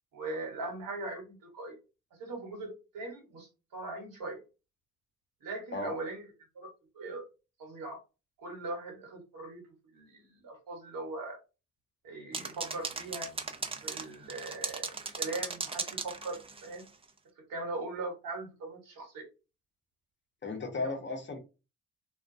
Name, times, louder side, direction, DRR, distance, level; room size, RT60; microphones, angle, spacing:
voice 1, 0.1-1.7 2.2-4.4 5.4-6.3 6.5-7.2 7.6-8.0 8.4-9.6 9.9-11.4 12.0-13.3 13.8-16.8 17.4-19.3 20.7-20.9, right 2 dB, 60° right, 1.1 m, -40 dB
sound 1, 12.3-16.9, right 4 dB, 15° right, 0.4 m, -37 dB
voice 2, 20.4-21.4, left 3 dB, 30° left, 0.9 m, -35 dB
2.3 x 2.2 x 2.6 m
hypercardioid pair, 50°, 36 cm